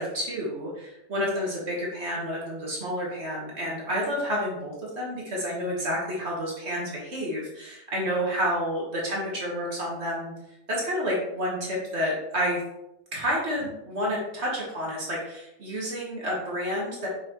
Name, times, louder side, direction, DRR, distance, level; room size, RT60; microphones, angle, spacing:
voice 1, 0.0-10.3 10.7-12.6 13.1-17.1, equal, 50° right, -4 dB, 1.9 m, -30 dB
6.2 x 5.8 x 3.1 m, 0.87 s
omnidirectional pair, 1.4 m